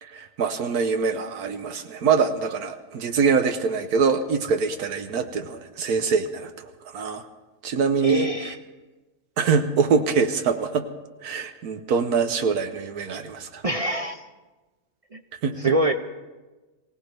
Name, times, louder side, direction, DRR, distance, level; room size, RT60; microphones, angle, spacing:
voice 1, 0.0-7.2 7.6-8.5 9.4-10.9 11.2-13.6 15.4-15.7, right 5 dB, 80° right, 8 dB, 1.3 m, -24 dB
voice 2, 8.0-8.6 13.6-14.2 15.1-15.2 15.6-15.9, right 2 dB, 55° right, 6 dB, 0.4 m, -24 dB
23.5 x 17.0 x 3.3 m, 1.2 s
omnidirectional pair, 1.6 m